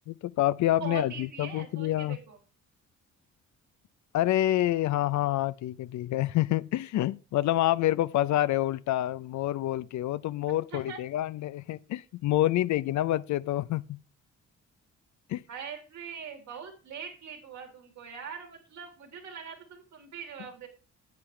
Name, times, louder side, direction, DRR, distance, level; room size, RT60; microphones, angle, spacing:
voice 1, 0.1-2.2 4.1-14.0 15.3-15.4, left 14 dB, 70° left, 0.5 m, -27 dB
voice 2, 0.8-2.4 10.5-11.0 15.5-20.7, right 7 dB, 70° right, 3.3 m, -42 dB
9.5 x 8.6 x 3.2 m
cardioid pair, 90°, 30 cm